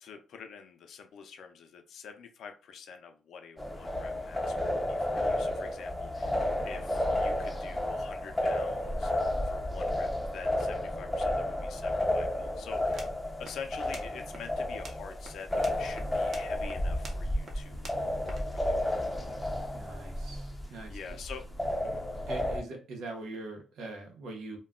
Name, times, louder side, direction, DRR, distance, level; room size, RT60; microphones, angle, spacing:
voice 1, 0.0-9.1 9.4-13.1 13.4-19.0 20.6-21.5 21.8-22.0, left 6 dB, 65° left, 6 dB, 0.5 m, -46 dB
sound 1, 3.6-22.6, left 1 dB, 10° left, 0.5 m, -32 dB
sound 2, 12.8-19.1, right 2 dB, 45° right, 0.7 m, -50 dB
voice 2, 19.7-21.2 22.3-24.6, right 2 dB, 85° right, 2 dB, 0.8 m, -42 dB
2.2 x 2.2 x 3.6 m, 0.34 s
cardioid pair, 130°, 0 cm